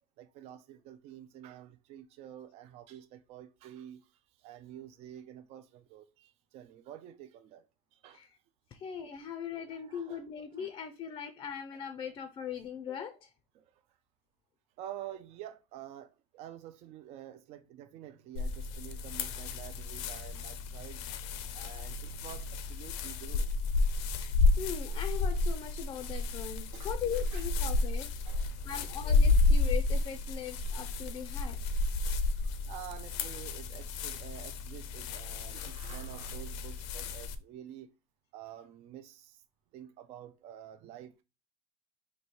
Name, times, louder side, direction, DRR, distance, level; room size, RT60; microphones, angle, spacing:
voice 1, 0.2-4.1 4.4-7.7 7.9-8.2 9.7-10.2 10.6-10.7 13.5-13.7 14.8-21.1 21.5-23.6 26.7-27.5 28.2-28.9 32.3-37.9 38.3-39.4 39.7-41.2, right 11 dB, 50° right, 0.4 m, -49 dB
voice 2, 8.7-13.3 24.1-28.1 28.4-31.6, left 8 dB, 30° left, 0.4 m, -40 dB
sound 1, 18.3-37.3, left 3 dB, 80° left, 0.5 m, -31 dB
3.1 x 2.7 x 4.2 m
cardioid pair, 140°, 14 cm